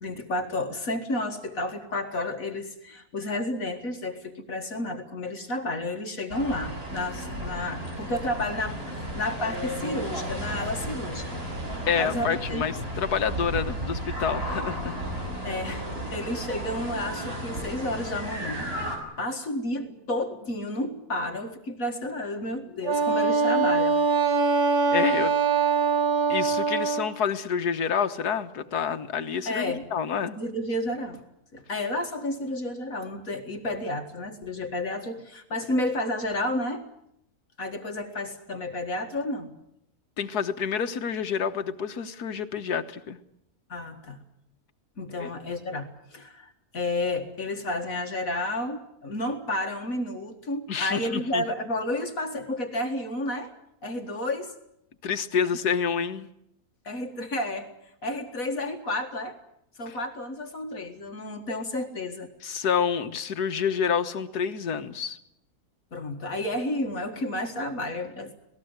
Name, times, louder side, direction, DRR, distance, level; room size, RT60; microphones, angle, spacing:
voice 1, 0.0-11.4 11.9-12.6 15.4-18.7 19.2-24.0 29.5-29.8 30.4-31.2 31.5-36.9 37.6-39.5 43.7-44.2 45.0-53.5 53.8-54.5 56.8-57.7 58.0-59.4 59.8-62.3 65.9-68.4, left 1 dB, 60° left, 5 dB, 2.3 m, -31 dB
sound 1, 6.3-19.0, right 1 dB, 40° right, 6.7 m, -34 dB
voice 2, 11.9-15.0 24.9-25.3 26.3-30.4 40.2-43.2 45.2-45.3 50.7-51.4 55.0-56.3 59.9-60.0 62.4-65.2, left 7 dB, 85° left, 9 dB, 1.8 m, -28 dB
Wind instrument woodwind instrument, 22.8-27.1, right 5 dB, 85° right, 2.1 m, -23 dB
27.0 x 19.0 x 8.1 m, 0.77 s
omnidirectional pair, 1.6 m